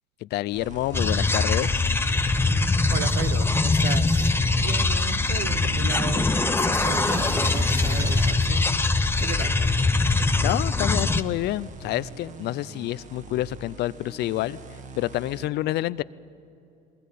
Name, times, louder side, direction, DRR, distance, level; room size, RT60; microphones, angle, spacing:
voice 1, 0.2-1.7 9.6-9.7 10.1-14.6 15.0-16.0, left 15 dB, 75° left, 0.6 m, -28 dB
sound 1, 0.5-15.5, right 4 dB, 45° right, 1.5 m, -44 dB
sound 2, 0.9-11.2, left 3 dB, 15° left, 0.9 m, -22 dB
voice 2, 2.3-9.6, right 9 dB, 80° right, 1.2 m, -36 dB
sound 3, 6.7-9.2 10.6-11.9, right 1 dB, 20° right, 1.9 m, -36 dB
22.0 x 19.5 x 8.5 m
cardioid pair, 110°, 17 cm